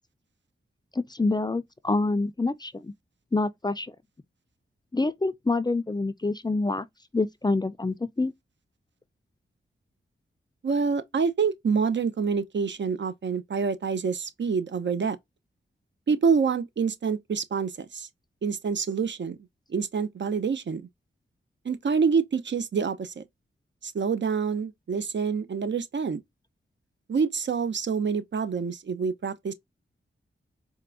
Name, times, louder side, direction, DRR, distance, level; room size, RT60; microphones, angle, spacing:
voice 1, 0.9-2.9 3.3-3.9 4.9-6.9 7.1-8.3, left 3 dB, 20° left, 0.4 m, -27 dB
voice 2, 10.6-15.2 16.1-18.1 18.4-19.4 19.7-20.9 21.6-23.2 23.8-26.2 27.1-29.5, right 5 dB, 60° right, 0.6 m, -27 dB
4.5 x 2.3 x 2.4 m
cardioid pair, 50°, 21 cm